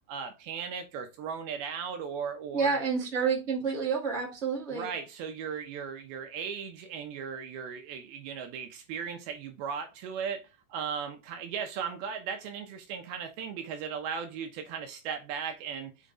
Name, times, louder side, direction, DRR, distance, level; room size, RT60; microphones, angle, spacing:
voice 1, 0.1-2.8 4.7-10.4 10.7-15.9, right 6 dB, 75° right, 2.7 m, -37 dB
voice 2, 2.5-4.9, right 5 dB, 20° right, 1.9 m, -29 dB
6.9 x 4.4 x 3.7 m
omnidirectional pair, 4.7 m